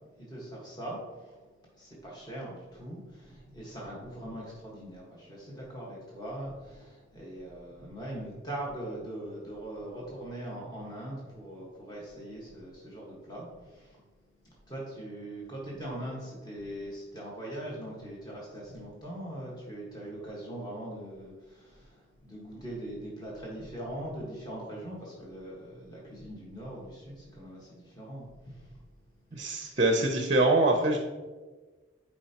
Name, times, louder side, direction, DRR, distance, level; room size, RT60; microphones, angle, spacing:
voice 1, 0.2-1.4 1.7-14.0 14.4-28.8 29.3-29.8, right 1 dB, 20° left, -5 dB, 1.4 m, -41 dB
voice 2, 29.3-31.0, right 2 dB, 35° right, 3 dB, 0.6 m, -24 dB
8.8 x 4.6 x 2.9 m, 1.3 s
head